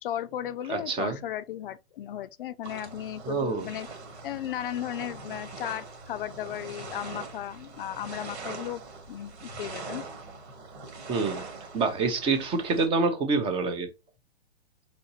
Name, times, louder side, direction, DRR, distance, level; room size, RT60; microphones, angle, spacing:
voice 1, 0.0-3.9 4.2-10.0, left 11 dB, 55° left, 0.4 m, -35 dB
voice 2, 0.7-1.2 3.2-3.7 11.1-11.4 11.7-13.9, right 4 dB, 15° right, 0.6 m, -26 dB
sound 1, 2.6-12.9, right 3 dB, 90° right, 2.0 m, -42 dB
4.2 x 4.0 x 2.7 m
hypercardioid pair, 140°, 33 cm